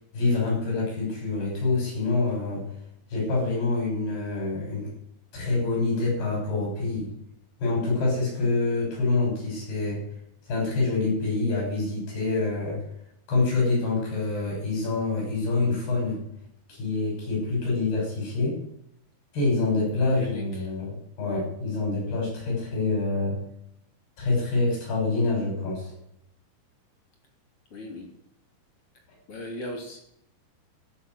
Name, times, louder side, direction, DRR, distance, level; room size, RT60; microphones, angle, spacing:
voice 1, 0.1-2.7 3.1-4.9 5.3-7.1 7.6-10.0 10.5-12.8 13.3-16.2 16.7-18.6 19.3-23.4 24.2-25.9, left 3 dB, 70° left, -2 dB, 8.9 m, -26 dB
voice 2, 20.0-20.7 27.7-28.1 29.3-30.0, left 1 dB, 35° left, 1 dB, 3.3 m, -38 dB
14.5 x 7.1 x 7.8 m, 0.76 s
omnidirectional pair, 4.6 m